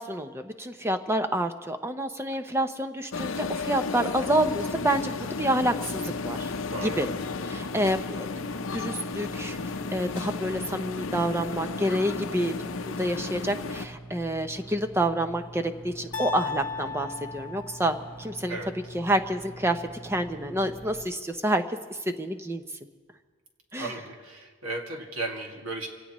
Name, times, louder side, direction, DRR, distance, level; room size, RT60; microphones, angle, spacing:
voice 1, 0.0-5.1 5.4-6.5 6.8-7.1 7.4-9.6 9.9-12.5 12.9-18.6 18.9-22.6 23.7-23.9, right 1 dB, 10° right, 8 dB, 0.7 m, -28 dB
sound 1, 3.1-13.9, left 4 dB, 70° left, 0.6 m, -33 dB
sound 2, 4.2-21.1, right 2 dB, 5° left, 1.1 m, -45 dB
voice 2, 6.7-7.0 18.5-18.7 23.8-25.9, right 2 dB, 90° right, 2 dB, 2.0 m, -35 dB
sound 3, 16.1-18.3, left 5 dB, 45° left, 1.6 m, -35 dB
24.5 x 17.0 x 3.1 m, 1.5 s
head